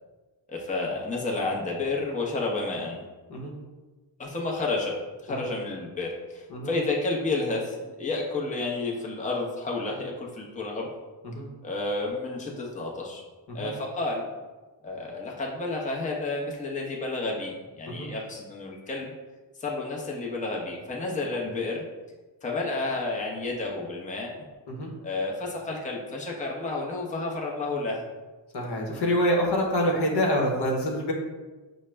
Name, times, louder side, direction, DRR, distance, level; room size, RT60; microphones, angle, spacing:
voice 1, 0.5-3.0 4.2-4.9 5.2-10.9 11.6-13.2 13.5-14.3 14.8-19.1 19.6-21.8 22.4-24.3 25.0-28.0, left 3 dB, 15° left, -2 dB, 0.7 m, -31 dB
voice 2, 28.5-31.1, equal, 60° left, 0 dB, 0.9 m, -26 dB
4.8 x 2.2 x 3.3 m, 1.3 s
cardioid pair, 65°, 45 cm